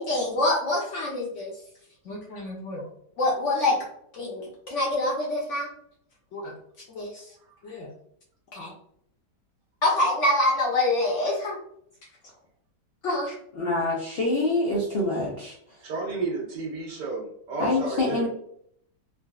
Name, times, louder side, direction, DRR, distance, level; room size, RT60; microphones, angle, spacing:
voice 1, 0.0-1.5 2.1-2.8 3.2-3.7 4.1-5.7 6.3-6.5 6.9-7.2 7.6-7.9 8.5-8.7 9.8-11.6 13.0-13.3, left 1 dB, 60° left, -2 dB, 0.8 m, -26 dB
voice 2, 13.6-15.6 17.6-18.3, left 2 dB, 90° left, -2 dB, 0.5 m, -25 dB
voice 3, 15.8-18.3, right 3 dB, 85° right, -2 dB, 1.6 m, -32 dB
3.8 x 2.3 x 2.3 m, 0.67 s
omnidirectional pair, 1.8 m